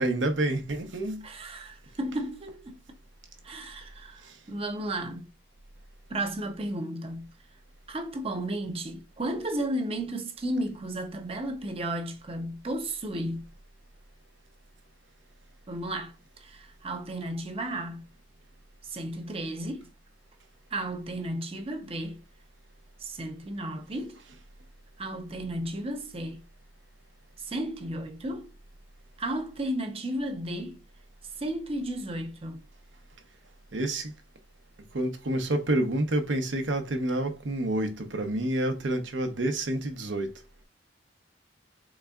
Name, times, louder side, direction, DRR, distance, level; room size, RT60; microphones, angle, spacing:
voice 1, 0.0-1.3 4.2-4.4 33.7-34.1 34.9-40.4, right 1 dB, 75° right, 0.8 m, -28 dB
voice 2, 1.2-2.8 3.4-4.2 4.5-5.3 6.1-7.3 7.9-13.5 15.7-18.1 18.8-19.9 20.7-22.2 23.0-24.2 25.0-26.4 27.4-28.5 29.2-30.8 31.4-32.6, right 1 dB, 30° right, 0.6 m, -33 dB
4.0 x 3.5 x 2.3 m
head